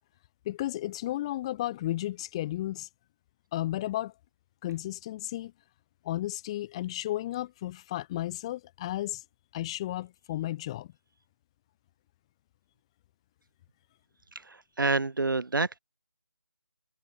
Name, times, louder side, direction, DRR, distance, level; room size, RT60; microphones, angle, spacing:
voice 1, 0.4-2.9 3.5-4.1 4.6-5.5 6.0-9.2 9.5-10.9, left 14 dB, 15° left, 4.4 m, -33 dB
voice 2, 14.3-15.8, right 3 dB, 70° right, 7.4 m, -28 dB
figure-of-eight pair, 170°, 11 cm